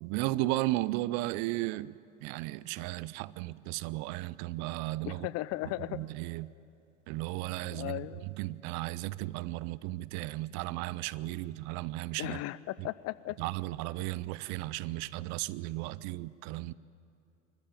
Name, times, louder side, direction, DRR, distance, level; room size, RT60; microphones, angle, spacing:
voice 1, 0.0-5.3 5.9-6.5 7.1-12.4 12.8-12.9 13.4-16.7, right 18 dB, 45° right, 0.5 m, -35 dB
voice 2, 5.1-6.0 7.6-8.3 12.2-13.4, left 17 dB, 40° left, 0.6 m, -36 dB
24.5 x 14.0 x 9.2 m
hypercardioid pair, 90°, 39 cm